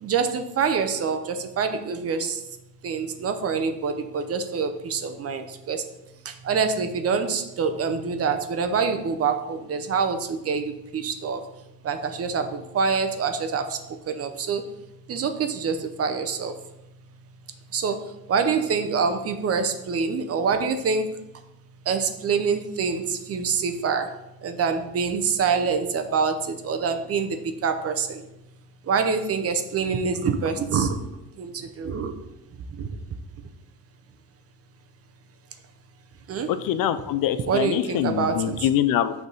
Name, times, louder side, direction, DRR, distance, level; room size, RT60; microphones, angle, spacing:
voice 1, 0.0-2.4 2.8-5.8 6.4-11.4 11.8-13.8 14.1-14.7 15.1-16.5 17.7-18.0 18.3-21.2 21.9-24.1 24.4-28.2 28.9-31.0 31.4-32.1 32.8-32.9 36.3-36.5 37.5-38.7, right 5 dB, 40° right, 8 dB, 0.7 m, -25 dB
voice 2, 36.5-39.1, left 11 dB, 65° left, 12 dB, 0.5 m, -24 dB
6.2 x 3.5 x 5.4 m, 0.91 s
cardioid pair, 130°, 36 cm